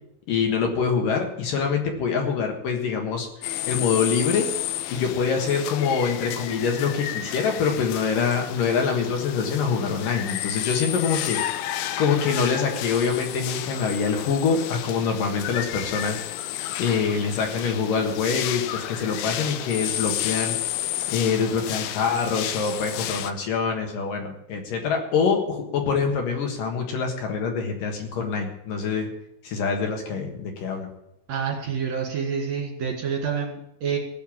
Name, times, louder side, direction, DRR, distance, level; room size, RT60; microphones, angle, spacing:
voice 1, 0.3-3.3 3.7-4.5 4.9-11.4 12.0-16.2 16.8-20.5 21.1-29.1 29.4-30.9, left 5 dB, 65° left, 3 dB, 3.1 m, -25 dB
sound 1, 3.4-23.3, left 12 dB, 80° left, 2.4 m, -31 dB
voice 2, 31.3-34.0, right 6 dB, 55° right, 0 dB, 2.6 m, -28 dB
17.0 x 7.0 x 7.3 m, 0.80 s
omnidirectional pair, 4.5 m